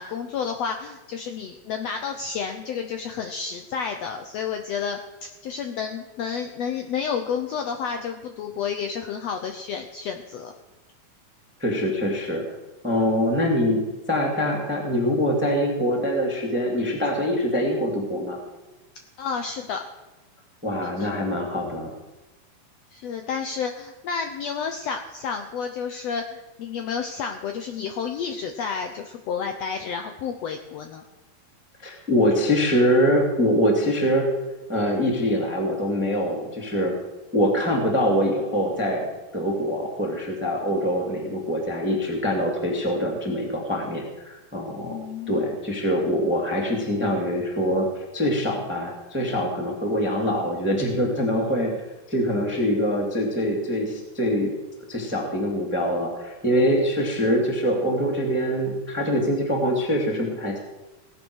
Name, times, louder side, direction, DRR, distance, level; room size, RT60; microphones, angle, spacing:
voice 1, 0.0-10.5 19.2-19.8 21.0-21.1 22.9-31.1 44.8-45.4, left 6 dB, 85° left, 5 dB, 1.4 m, -30 dB
voice 2, 11.6-12.4 12.8-13.8 14.1-18.4 20.6-21.9 31.8-34.3 34.7-37.0 37.3-39.1 39.3-45.0 45.3-51.7 52.1-54.5 54.9-60.6, equal, 5° right, 0 dB, 1.8 m, -24 dB
19.0 x 8.5 x 6.2 m, 1.1 s
omnidirectional pair, 4.1 m